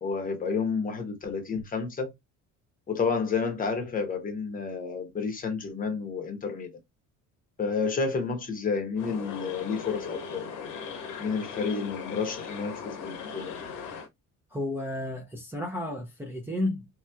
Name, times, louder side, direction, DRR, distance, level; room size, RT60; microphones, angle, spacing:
voice 1, 0.0-2.1 2.9-6.7 7.6-10.4 11.2-13.5, left 5 dB, 25° left, 0.9 m, -30 dB
sound 1, 9.0-14.1, left 6 dB, 85° left, 1.0 m, -39 dB
voice 2, 14.5-16.9, left 1 dB, 5° right, 0.5 m, -32 dB
3.1 x 2.9 x 2.2 m
cardioid pair, 150°, 31 cm